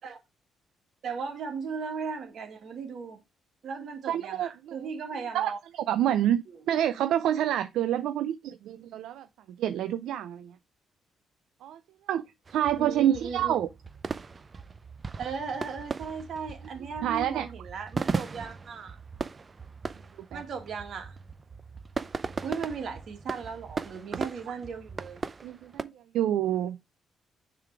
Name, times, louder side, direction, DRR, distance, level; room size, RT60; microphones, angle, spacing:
voice 1, 1.0-3.2 3.6-5.6 12.8-13.7 15.2-19.0 20.3-21.2 22.4-25.2, right 5 dB, 60° right, 2.2 m, -37 dB
voice 2, 4.1-4.9 5.3-9.3 9.6-10.5 11.6-11.8 12.1-12.2 12.5-13.7 17.0-17.5 20.3-20.4 25.4-26.8, right 11 dB, 80° right, 0.5 m, -28 dB
sound 1, 12.4-25.8, right 4 dB, 30° right, 0.6 m, -38 dB
6.6 x 3.9 x 4.8 m
cardioid pair, 90°, 0 cm